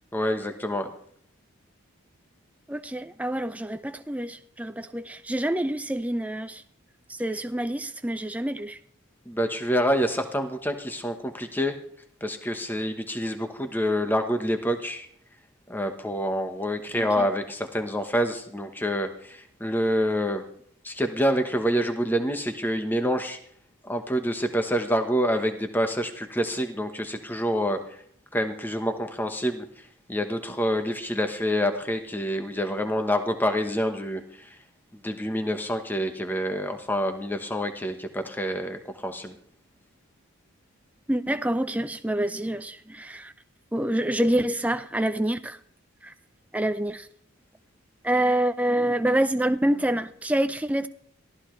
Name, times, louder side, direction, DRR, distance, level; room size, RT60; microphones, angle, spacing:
voice 1, 0.1-0.9 9.3-11.8 12.2-15.1 15.7-20.5 20.8-23.4 23.8-28.0 28.3-29.7 30.1-34.6 35.0-39.3, equal, 10° left, 6 dB, 1.1 m, -27 dB
voice 2, 2.7-6.6 7.1-8.8 16.9-17.3 41.1-43.3 43.7-45.6 46.0-46.1 46.5-47.1 48.0-50.9, right 1 dB, 5° right, 10 dB, 0.5 m, -27 dB
22.0 x 15.0 x 3.2 m, 0.64 s
head